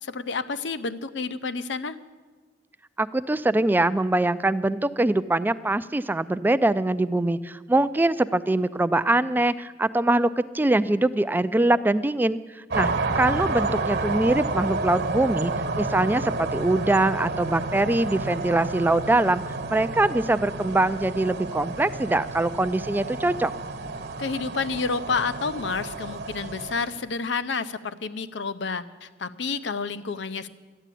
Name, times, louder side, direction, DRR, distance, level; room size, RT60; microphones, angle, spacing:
voice 1, 0.0-2.0 24.2-30.5, left 4 dB, 75° left, 14 dB, 0.6 m, -29 dB
voice 2, 3.0-10.3 10.5-12.9 13.2-19.4 19.7-23.5, right 2 dB, 10° right, 13 dB, 0.3 m, -23 dB
sound 1, 12.7-27.0, right 3 dB, 60° right, 1.2 m, -30 dB
13.0 x 10.0 x 8.3 m, 1.4 s
head